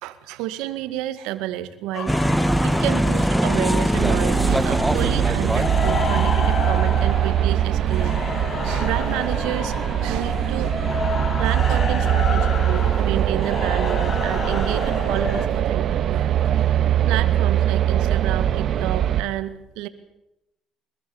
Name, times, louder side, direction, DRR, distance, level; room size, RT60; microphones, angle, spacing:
voice 1, 0.0-2.1 2.6-8.3 8.6-9.8 10.0-10.8 11.4-16.6 17.0-19.9, right 13 dB, 80° right, 11 dB, 2.0 m, -30 dB
sound 1, 1.9-15.5, left 4 dB, 35° left, 3.5 m, -30 dB
sound 2, 2.1-6.7, right 1 dB, 5° right, 1.3 m, -22 dB
sound 3, 3.9-19.2, right 10 dB, 60° right, 1.6 m, -22 dB
24.5 x 22.0 x 7.3 m, 0.88 s
supercardioid pair, 75°, 0 cm